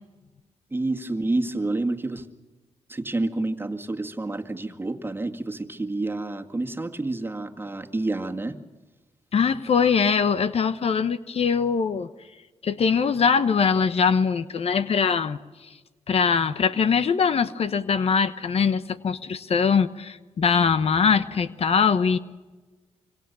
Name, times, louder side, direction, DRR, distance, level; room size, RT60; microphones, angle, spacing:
voice 1, 0.7-2.3 2.9-8.6, right 2 dB, 20° right, 4 dB, 2.1 m, -29 dB
voice 2, 9.3-12.1 12.6-15.4 16.1-22.2, left 6 dB, 60° left, 12 dB, 1.1 m, -22 dB
26.0 x 25.0 x 7.0 m, 1.2 s
cardioid pair, 80°, 12 cm